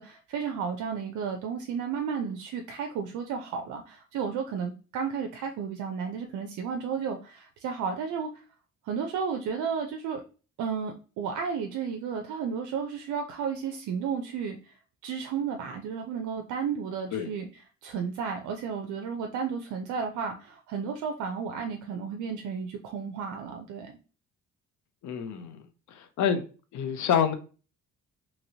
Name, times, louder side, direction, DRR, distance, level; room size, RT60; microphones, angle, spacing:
voice 1, 0.0-8.4 8.8-10.2 10.6-14.7 15.0-17.5 17.8-23.9, right 6 dB, 75° right, 4 dB, 0.5 m, -33 dB
voice 2, 25.0-25.6 25.9-26.4 26.7-27.3, left 8 dB, 70° left, 8 dB, 0.6 m, -27 dB
2.9 x 2.9 x 2.7 m, 0.36 s
cardioid pair, 90°, 30 cm